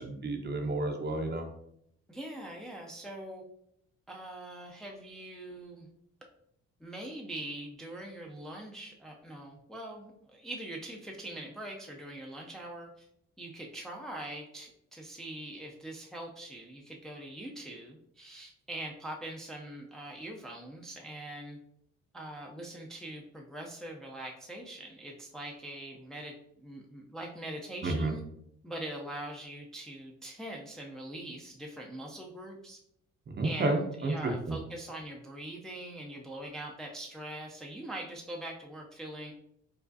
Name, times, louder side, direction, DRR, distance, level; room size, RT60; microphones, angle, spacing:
voice 1, 0.0-1.5 27.8-28.1 33.3-34.6, right 2 dB, 35° right, 4 dB, 0.6 m, -31 dB
voice 2, 2.1-3.4 4.1-5.9 6.8-13.1 13.4-21.6 22.1-28.2 28.6-32.8 33.4-39.3, right 1 dB, ahead, 0 dB, 0.5 m, -43 dB
4.6 x 2.4 x 2.6 m, 0.73 s
cardioid pair, 90°, 30 cm